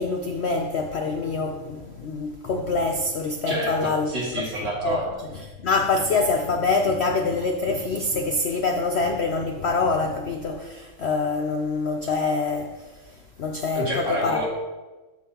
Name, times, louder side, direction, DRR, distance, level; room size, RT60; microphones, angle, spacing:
voice 1, 0.0-4.1 4.8-5.0 5.3-14.4, left 3 dB, 85° left, 0.5 m, -25 dB
voice 2, 3.5-5.1 13.7-14.5, equal, 85° right, 3.4 m, -28 dB
13.5 x 5.6 x 2.9 m
omnidirectional pair, 1.9 m